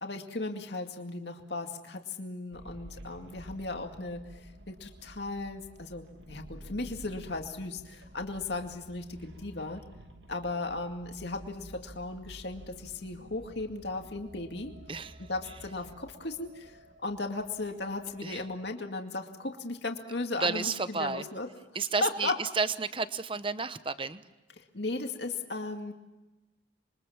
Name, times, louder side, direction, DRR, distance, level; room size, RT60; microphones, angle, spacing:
voice 1, 0.0-9.8 10.3-14.7 15.3-21.5 22.0-22.3 24.6-25.9, left 2 dB, 60° left, 4 dB, 2.3 m, -36 dB
sound 1, 2.5-18.7, right 1 dB, 65° right, 2.6 m, -51 dB
voice 2, 20.4-21.2 21.7-24.2, right 4 dB, 25° right, 13 dB, 0.9 m, -31 dB
27.0 x 23.5 x 7.3 m, 1.1 s
head